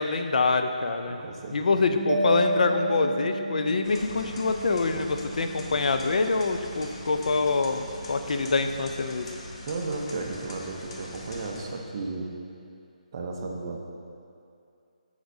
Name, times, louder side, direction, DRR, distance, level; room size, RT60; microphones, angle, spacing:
voice 1, 0.0-1.2 1.5-9.3, left 4 dB, 65° left, 7 dB, 0.4 m, -25 dB
voice 2, 1.0-1.9 9.7-12.4 13.1-13.8, right 3 dB, 35° right, 1 dB, 0.6 m, -34 dB
Bass guitar, 1.9-11.5, right 8 dB, ahead, 0.6 m, -42 dB
Mallet percussion, 2.1-4.1, equal, 75° right, 0.5 m, -28 dB
sound 1, 3.8-11.7, left 1 dB, 40° left, 0.8 m, -42 dB
7.8 x 5.1 x 2.7 m, 2.5 s
hypercardioid pair, 165°, 4 cm